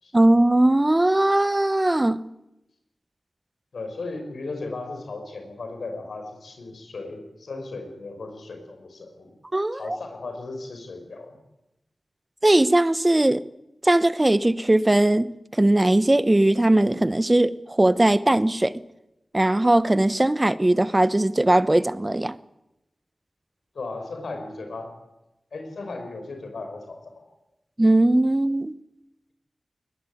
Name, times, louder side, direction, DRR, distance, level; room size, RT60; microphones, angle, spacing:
voice 1, 0.1-2.2 9.5-10.0 12.4-13.4 13.8-18.8 19.3-22.4 27.8-28.7, right 1 dB, 25° right, 15 dB, 1.0 m, -19 dB
voice 2, 3.7-9.3 9.7-11.4 23.7-25.0 25.5-27.3, left 3 dB, 90° left, 5 dB, 5.6 m, -36 dB
20.5 x 20.5 x 9.3 m, 0.94 s
cardioid pair, 50°, 0 cm